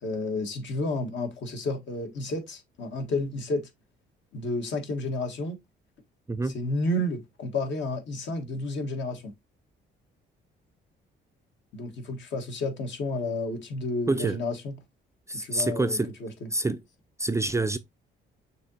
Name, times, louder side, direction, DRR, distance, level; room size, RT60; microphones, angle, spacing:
voice 1, 0.0-3.7 4.3-5.6 6.5-9.3 11.7-14.7 15.4-16.3, left 2 dB, 65° left, 1.5 m, -31 dB
voice 2, 14.1-14.4 15.3-16.1 16.5-16.8 17.2-17.8, right 2 dB, 15° right, 0.4 m, -27 dB
6.5 x 2.9 x 2.7 m
cardioid pair, 90°, 20 cm